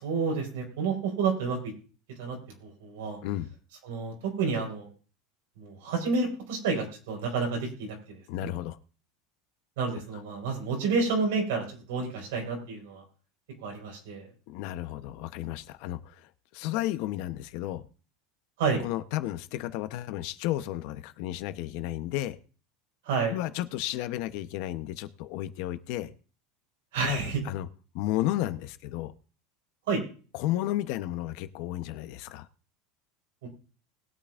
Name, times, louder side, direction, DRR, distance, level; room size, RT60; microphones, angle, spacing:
voice 1, 0.0-1.7 2.2-3.2 3.8-4.9 5.6-8.5 9.8-13.0 13.6-14.2 18.6-18.8 23.0-23.4 26.9-27.4 29.9-30.0 33.4-33.5, right 4 dB, 80° right, 2 dB, 4.8 m, -30 dB
voice 2, 8.3-8.8 9.9-10.0 14.5-17.8 18.8-22.4 23.3-26.1 27.0-27.2 27.4-27.7 27.9-29.1 30.3-32.5, left 14 dB, 55° left, 11 dB, 0.8 m, -33 dB
20.5 x 8.6 x 2.5 m, 0.39 s
supercardioid pair, 155°, 0 cm